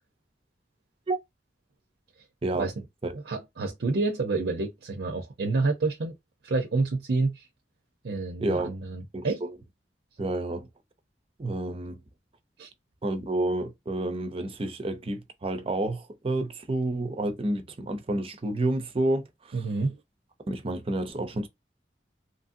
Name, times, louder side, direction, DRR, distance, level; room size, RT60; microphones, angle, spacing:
voice 1, 3.1-6.1 6.4-7.5 8.0-9.4 12.6-12.7 19.5-20.0, right 3 dB, 75° right, 0.6 m, -28 dB
voice 2, 8.4-8.8 9.1-9.5 10.2-10.7 11.4-12.0 13.0-19.6 20.5-21.5, right 2 dB, 35° right, 0.5 m, -29 dB
3.0 x 2.7 x 2.5 m
head